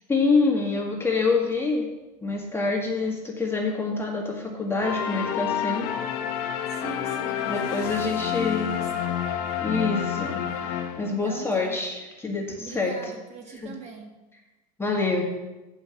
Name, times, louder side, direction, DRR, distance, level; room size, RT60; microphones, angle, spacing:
voice 1, 0.1-1.9 2.2-5.9 7.5-8.8 9.6-12.9 13.6-13.7 14.8-15.2, left 3 dB, 10° left, -1 dB, 1.6 m, -26 dB
sound 1, 4.8-11.4, left 9 dB, 70° left, 0.9 m, -29 dB
voice 2, 6.7-9.2 11.2-11.8 12.6-14.1, right 5 dB, 30° right, 1 dB, 1.7 m, -42 dB
8.1 x 5.6 x 6.9 m, 1.1 s
supercardioid pair, 130°, 21 cm